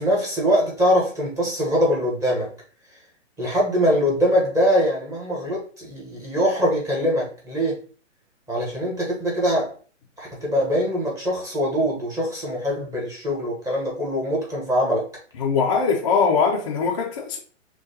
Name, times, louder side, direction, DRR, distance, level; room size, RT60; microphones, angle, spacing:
voice 1, 0.0-2.5 3.4-7.8 8.5-9.7 10.2-15.1, equal, 10° right, 1.0 m, -23 dB
voice 2, 15.4-17.4, left 5 dB, 30° left, 0.3 m, -21 dB
6.0 x 2.2 x 2.7 m
hypercardioid pair, 130°, 38 cm